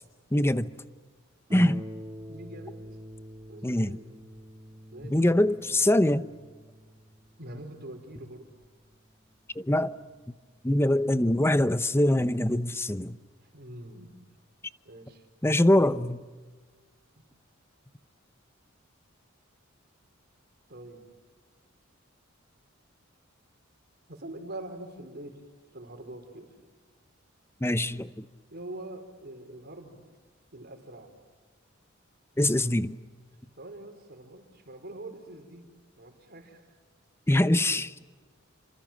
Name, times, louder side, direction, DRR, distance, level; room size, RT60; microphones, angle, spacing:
voice 1, 0.3-0.7 1.5-1.8 3.6-4.0 5.1-6.2 9.6-9.9 10.6-13.2 15.4-16.2 27.6-28.2 32.4-32.9 37.3-37.9, left 1 dB, 10° left, 0.8 m, -23 dB
Harp, 1.5-10.7 11.5-11.6 12.1-12.2, equal, 25° right, 2.3 m, -46 dB
voice 2, 2.3-2.8 3.5-4.1 4.9-5.4 7.4-8.5 13.4-14.1 14.8-15.2 20.7-21.0 24.1-25.4 25.7-26.5 28.5-30.0 30.5-31.1 32.6-32.8 33.6-35.7 36.0-36.8 37.3-37.8, right 1 dB, 50° right, 4.7 m, -44 dB
29.5 x 26.5 x 7.5 m
head